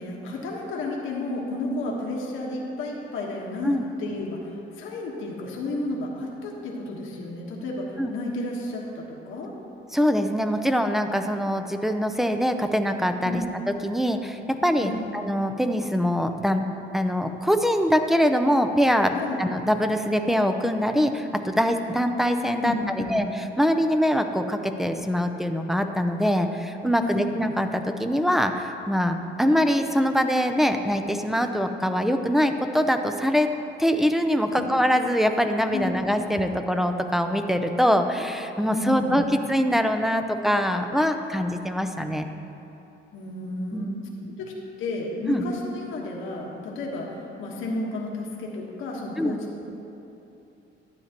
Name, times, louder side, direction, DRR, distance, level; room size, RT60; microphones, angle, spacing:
voice 1, 0.0-9.5 13.2-13.5 14.8-15.1 19.1-19.4 22.6-23.2 27.0-27.3 34.5-34.7 35.7-35.9 38.7-39.2 43.1-44.0 44.4-44.5 44.8-49.4, left 2 dB, 85° left, -2 dB, 1.3 m, -32 dB
voice 2, 9.9-13.4 13.8-16.7 16.9-23.3 23.6-33.5 33.8-42.3 43.7-43.9 45.3-45.4 49.2-49.4, equal, ahead, 6 dB, 0.5 m, -23 dB
12.0 x 8.9 x 2.9 m, 2.9 s
cardioid pair, 90°, 20 cm